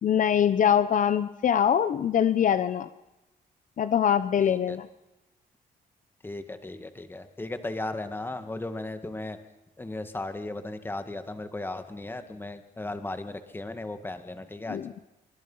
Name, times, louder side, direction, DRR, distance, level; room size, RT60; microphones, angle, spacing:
voice 1, 0.0-2.9 3.8-4.9 14.7-15.0, left 9 dB, 55° left, 12 dB, 0.9 m, -23 dB
voice 2, 4.4-4.8 6.2-9.4 9.8-14.8, left 2 dB, 15° left, 9 dB, 1.9 m, -36 dB
24.5 x 24.0 x 5.7 m, 0.96 s
cardioid pair, 125°, 16 cm